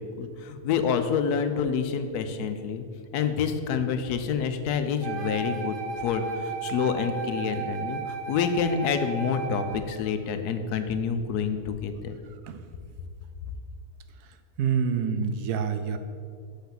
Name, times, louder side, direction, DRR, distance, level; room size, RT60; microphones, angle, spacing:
voice 1, 0.2-2.8 3.1-12.2, left 6 dB, 85° left, 9 dB, 1.2 m, -28 dB
Wind instrument woodwind instrument, 5.0-9.9, right 4 dB, 65° right, 0.5 m, -34 dB
voice 2, 14.6-16.0, right 6 dB, 85° right, 9 dB, 1.2 m, -26 dB
6.4 x 5.7 x 5.8 m, 2.2 s
omnidirectional pair, 1.6 m